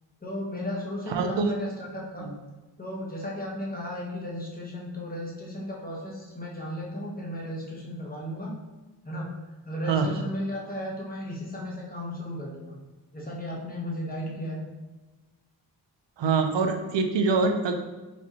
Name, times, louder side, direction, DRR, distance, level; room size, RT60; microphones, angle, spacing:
voice 1, 0.2-2.3 2.8-8.6 9.0-9.3 9.7-12.8 13.1-14.6, left 1 dB, 20° left, -3 dB, 1.0 m, -35 dB
voice 2, 1.1-1.6 2.2-2.3 9.9-10.1 16.2-17.7, right 4 dB, 85° right, 5 dB, 0.6 m, -24 dB
4.3 x 3.0 x 2.9 m, 1.2 s
wide cardioid pair, 105°, 43 cm